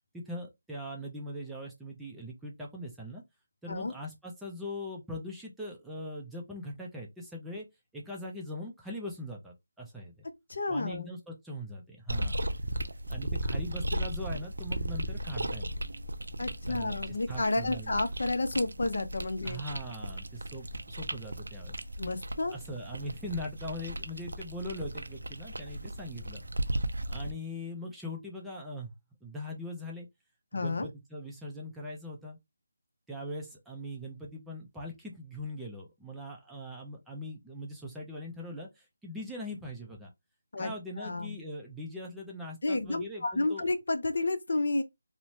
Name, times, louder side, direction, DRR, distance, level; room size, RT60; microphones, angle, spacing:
voice 1, 0.1-3.2 3.6-7.7 7.9-10.1 10.7-12.5 13.1-15.7 16.7-18.0 19.4-21.8 22.5-26.4 27.1-28.9 29.2-30.1 30.5-32.4 33.1-40.1 40.6-43.7, left 1 dB, 5° right, 0.4 m, -41 dB
voice 2, 10.5-11.1 16.4-19.6 22.0-22.5 30.5-30.9 40.5-40.7 41.0-41.4 42.6-44.8, left 2 dB, 60° left, 0.5 m, -31 dB
sound 1, 12.1-27.3, right 1 dB, 75° right, 0.4 m, -36 dB
3.0 x 2.0 x 2.7 m
figure-of-eight pair, 170°, 0 cm